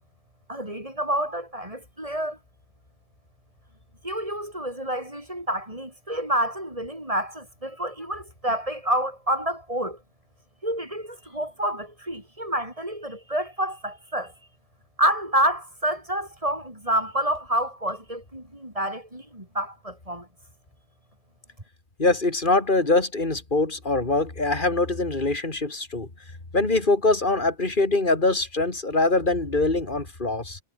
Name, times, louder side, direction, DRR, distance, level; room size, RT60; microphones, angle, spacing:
voice 1, 0.5-2.4 4.0-10.0 10.6-14.3 15.0-20.3, right 1 dB, 30° right, 7.6 m, -28 dB
voice 2, 22.0-26.1 26.5-30.6, left 2 dB, 50° left, 3.3 m, -23 dB
omnidirectional pair, 1.1 m